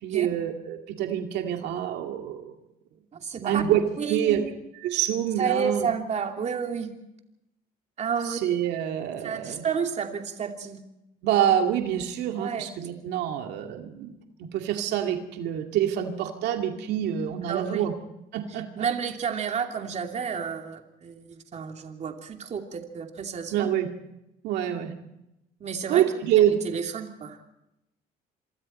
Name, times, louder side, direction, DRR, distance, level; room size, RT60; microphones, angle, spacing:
voice 1, 0.0-2.5 3.4-3.8 4.1-4.4 4.8-5.9 8.2-9.6 11.2-14.1 14.4-17.9 18.3-18.9 23.5-23.9 24.4-24.9 25.9-26.6, right 10 dB, 85° right, 4 dB, 2.3 m, -26 dB
voice 2, 3.1-3.6 4.0-4.5 5.4-6.9 8.0-8.4 9.2-10.8 12.4-12.7 17.5-17.9 18.5-23.7 25.6-26.0 26.4-27.4, right 6 dB, 40° right, 4 dB, 2.7 m, -31 dB
27.0 x 23.5 x 4.4 m, 0.87 s
cardioid pair, 110°, 17 cm